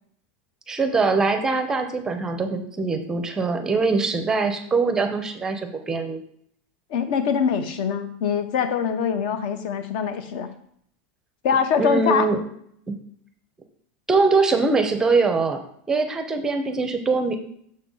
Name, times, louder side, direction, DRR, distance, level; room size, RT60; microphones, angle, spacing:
voice 1, 0.7-6.2 11.8-12.4 12.9-13.0 14.1-15.6 15.9-17.5, right 4 dB, 10° right, 7 dB, 0.6 m, -22 dB
voice 2, 6.9-10.5 11.4-12.3, left 6 dB, 55° left, 9 dB, 0.9 m, -23 dB
6.7 x 3.7 x 5.5 m, 0.67 s
supercardioid pair, 170°, 5 cm